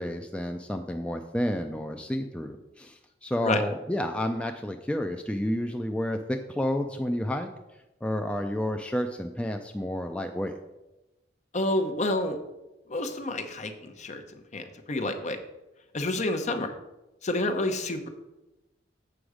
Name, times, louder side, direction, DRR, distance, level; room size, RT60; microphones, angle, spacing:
voice 1, 0.0-7.5 8.0-10.6, left 1 dB, 5° left, 4 dB, 0.4 m, -30 dB
voice 2, 11.5-12.4 12.9-14.2 14.5-15.4 15.9-16.7 17.2-18.1, left 2 dB, 40° left, 6 dB, 0.8 m, -29 dB
7.9 x 6.0 x 4.9 m, 1.0 s
head